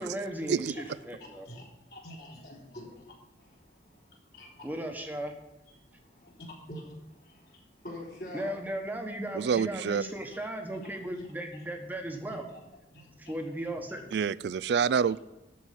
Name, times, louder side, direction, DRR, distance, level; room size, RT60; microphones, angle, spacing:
voice 1, 0.0-1.5 4.6-5.3 8.3-12.4 13.2-14.0, right 1 dB, 10° right, 3 dB, 1.2 m, -36 dB
voice 2, 1.2-3.8 4.4-4.7 5.7-8.6 10.3-10.4 10.7-11.3 11.5-11.6 12.3-12.6 12.9-13.3 13.8-13.9 14.8-15.0, left 1 dB, 50° left, -4 dB, 3.9 m, -47 dB
voice 3, 9.4-10.0 14.1-15.2, right 6 dB, 65° right, 18 dB, 0.3 m, -27 dB
13.0 x 4.7 x 8.5 m, 1.0 s
head